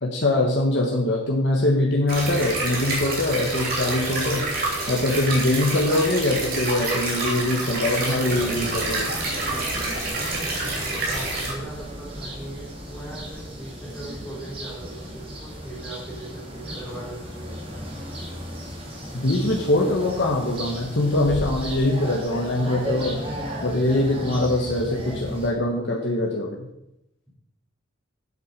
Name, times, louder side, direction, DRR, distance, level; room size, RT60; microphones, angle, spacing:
voice 1, 0.0-4.4 4.9-9.1 19.1-23.2 23.6-26.7, left 1 dB, 60° left, -2 dB, 1.3 m, -23 dB
sound 1, 2.1-11.5, right 2 dB, 45° right, 3.1 m, -28 dB
voice 2, 8.2-17.6, right 1 dB, 5° left, -8 dB, 3.8 m, -39 dB
sound 2, 8.3-25.5, equal, 25° right, 2.4 m, -35 dB
8.3 x 7.7 x 6.7 m, 0.86 s
head